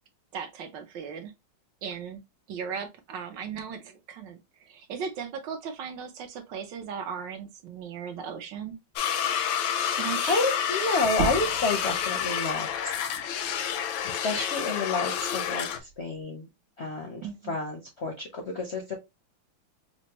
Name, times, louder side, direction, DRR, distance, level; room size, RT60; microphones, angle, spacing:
voice 1, 0.3-1.3 1.8-2.2 2.5-8.8 9.8-10.4 17.2-17.6, right 7 dB, 70° right, 1.3 m, -37 dB
sound 1, 9.0-15.8, left 9 dB, 85° left, 1.3 m, -29 dB
voice 2, 10.3-12.9 14.0-16.5 16.8-18.9, left 3 dB, 60° left, 0.7 m, -30 dB
sound 2, 11.0-16.2, right 5 dB, 90° right, 1.6 m, -39 dB
5.2 x 2.1 x 2.9 m
omnidirectional pair, 2.1 m